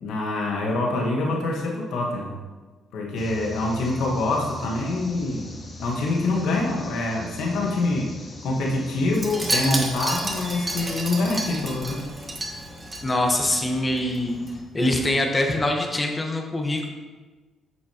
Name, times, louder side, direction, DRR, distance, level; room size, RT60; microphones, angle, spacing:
voice 1, 0.0-2.4 2.9-5.5 5.8-8.2 8.4-12.0, left 2 dB, 85° left, -1 dB, 1.3 m, -25 dB
sound 1, 3.2-14.6, left 2 dB, 40° left, 1.3 m, -42 dB
Wind chime, 9.1-13.6 13.9-14.2 14.5-14.6, right 2 dB, 25° right, 1.3 m, -30 dB
voice 2, 13.0-14.4 14.7-16.9, left 1 dB, 25° left, 2 dB, 1.2 m, -24 dB
9.2 x 6.1 x 3.0 m, 1.3 s
cardioid pair, 90°, 0 cm